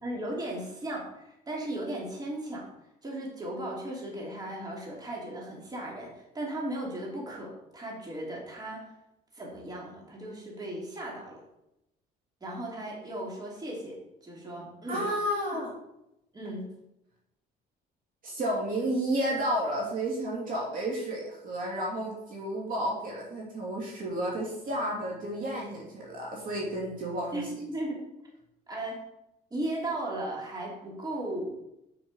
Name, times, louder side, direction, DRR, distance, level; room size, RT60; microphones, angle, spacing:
voice 1, 0.0-2.7 3.0-8.9 9.3-11.4 12.4-15.1 16.3-16.7 27.3-28.0 28.7-29.0 29.5-31.6, right 1 dB, 25° right, -2 dB, 3.1 m, -36 dB
voice 2, 14.9-15.7 18.2-27.5, right 1 dB, 55° right, -2 dB, 2.7 m, -31 dB
7.0 x 6.7 x 5.4 m, 0.85 s
cardioid pair, 110°, 17 cm